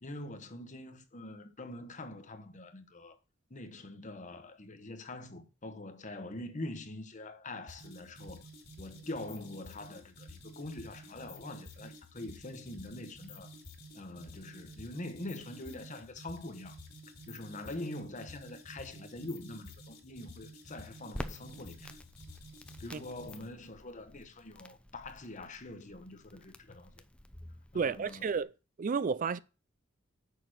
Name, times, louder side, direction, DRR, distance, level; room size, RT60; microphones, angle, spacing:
voice 1, 0.0-3.2 3.5-8.4 8.8-13.5 13.9-16.8 17.3-21.9 22.8-27.0 27.7-28.3, left 2 dB, 40° left, 1.2 m, -44 dB
sound 1, 7.7-23.5, left 1 dB, 55° left, 2.7 m, -51 dB
Crackle, 21.1-28.4, left 1 dB, 5° left, 0.6 m, -49 dB
voice 2, 27.7-28.5 28.8-29.4, right 5 dB, 40° right, 0.4 m, -31 dB
6.7 x 6.0 x 6.4 m
head